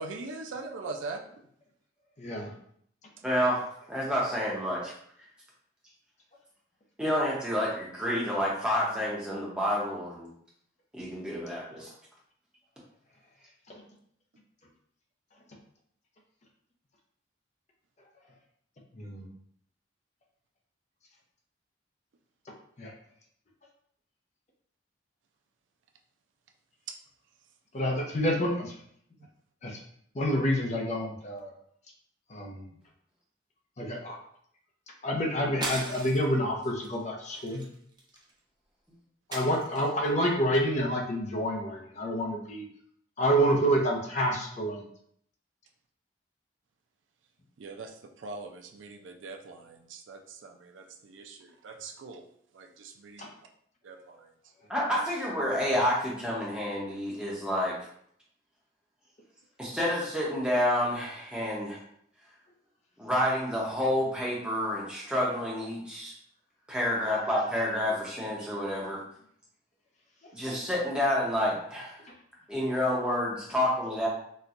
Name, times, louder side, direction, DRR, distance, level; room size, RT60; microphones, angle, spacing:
voice 1, 0.0-1.4 3.2-3.5 26.9-27.0 29.2-29.3 47.6-52.2 52.5-53.3 53.8-54.3, right 3 dB, 90° right, 5 dB, 0.4 m, -42 dB
voice 2, 2.2-2.5 13.7-13.8 18.9-19.3 22.8-22.9 27.7-28.7 29.6-29.8 30.1-31.5 32.3-32.6 33.8-34.2 35.0-37.6 39.3-42.7 43.2-44.8 53.2-53.3 67.1-67.3, equal, 40° left, 0 dB, 0.6 m, -28 dB
voice 3, 3.2-4.9 7.0-10.3 10.9-11.9 54.7-57.8 59.6-61.8 63.0-66.1 66.7-69.0 70.3-72.0 72.5-74.1, left 1 dB, 5° right, -5 dB, 0.8 m, -29 dB
sound 1, 35.6-36.4 36.8-37.0 37.3-38.3 39.3-40.1, right 2 dB, 25° right, 0.4 m, -38 dB
4.2 x 2.2 x 2.4 m, 0.66 s
head